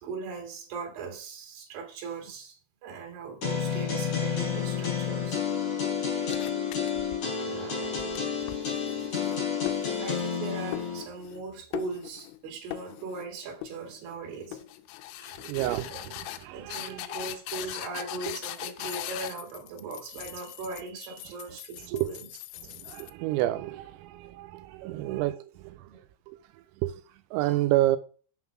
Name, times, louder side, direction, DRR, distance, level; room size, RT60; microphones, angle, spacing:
voice 1, 0.0-5.4 7.3-8.3 10.0-14.7 15.2-15.5 16.4-22.3 24.9-25.3 25.9-26.0, right 4 dB, 55° right, 3.2 m, -39 dB
sound 1, 3.4-11.0, left 7 dB, 40° left, 4.4 m, -30 dB
sound 2, 6.3-7.4 7.8-10.4 10.7-11.4 11.7-12.4 12.7-13.3 13.6-14.2 14.5-23.1, left 14 dB, 85° left, 2.7 m, -40 dB
voice 2, 15.4-17.7 18.3-18.4 18.9-19.0 21.9-22.1 22.9-25.7 26.3-26.4 26.8-26.9 27.3-28.0, right 15 dB, 85° right, 3.2 m, -30 dB
7.1 x 5.8 x 5.9 m
omnidirectional pair, 5.9 m